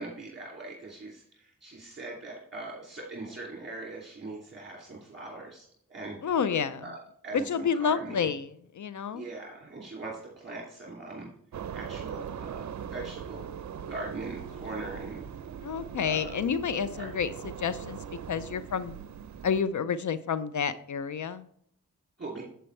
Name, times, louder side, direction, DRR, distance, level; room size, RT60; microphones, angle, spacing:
voice 1, 0.0-6.5 6.8-8.3 8.9-11.3 11.7-13.5 13.9-15.3 16.0-16.3 16.7-17.1 22.2-22.4, right 2 dB, 30° right, -4 dB, 2.6 m, -41 dB
voice 2, 6.2-6.9 7.3-9.3 15.6-18.0 18.3-19.0 19.4-21.4, left 6 dB, 60° left, 14 dB, 0.5 m, -29 dB
sound 1, 11.5-19.6, right 8 dB, 55° right, 0.6 m, -40 dB
7.9 x 7.7 x 3.2 m, 0.66 s
cardioid pair, 55°, 33 cm